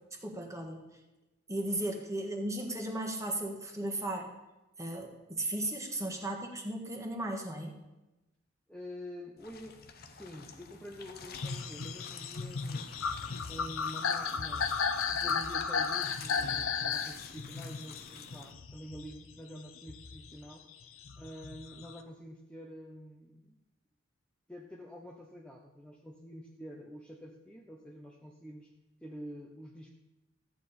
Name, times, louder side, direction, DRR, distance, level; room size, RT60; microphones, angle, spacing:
voice 1, 0.2-0.8 1.5-4.3 4.8-7.8, right 1 dB, 15° right, 2 dB, 1.5 m, -36 dB
voice 2, 8.7-14.8 15.1-20.6 21.2-23.6 24.5-28.7 29.0-29.9, equal, 5° left, -1 dB, 0.8 m, -47 dB
sound 1, 9.4-18.5, left 5 dB, 50° left, 0.9 m, -50 dB
sound 2, 11.3-19.3 19.8-22.0, left 6 dB, 90° left, 0.7 m, -34 dB
14.0 x 8.6 x 4.2 m, 1.0 s
head